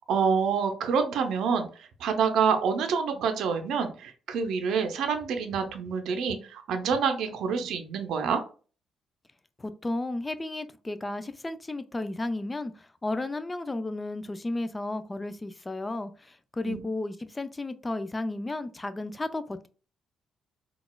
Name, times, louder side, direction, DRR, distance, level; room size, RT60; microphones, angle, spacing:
voice 1, 0.1-8.4 16.6-16.8, right 6 dB, 80° right, 0.5 m, -27 dB
voice 2, 9.6-19.7, left 2 dB, 20° left, 0.3 m, -33 dB
3.9 x 2.3 x 2.2 m
cardioid pair, 90°, 0 cm